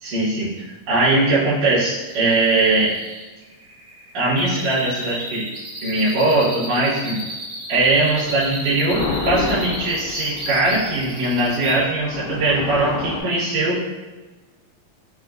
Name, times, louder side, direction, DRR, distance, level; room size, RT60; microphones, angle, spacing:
voice 1, 0.0-3.0 4.1-5.5 5.8-7.2 7.7-13.8, right 2 dB, 65° right, -12 dB, 2.7 m, -20 dB
sound 1, 2.0-11.8, equal, 85° right, 1.1 m, -34 dB
sound 2, 7.8-13.2, left 4 dB, 85° left, 2.4 m, -31 dB
6.5 x 2.3 x 2.4 m, 1.2 s
omnidirectional pair, 4.4 m